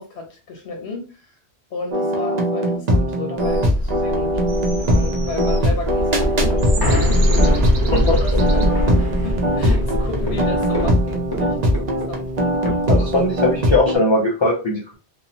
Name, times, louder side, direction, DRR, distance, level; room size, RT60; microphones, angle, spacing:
voice 1, 0.0-1.3 1.7-4.4 4.8-7.7 8.0-12.3, left 3 dB, 85° left, 1.0 m, -33 dB
sound 1, 1.9-14.0, equal, 50° right, 0.6 m, -21 dB
sound 2, 3.4-10.9, equal, 70° right, 0.9 m, -22 dB
sound 3, 5.6-13.7, left 2 dB, 25° left, 0.7 m, -27 dB
voice 2, 12.9-14.9, left 2 dB, 45° left, 0.3 m, -19 dB
2.6 x 2.0 x 2.8 m
omnidirectional pair, 1.1 m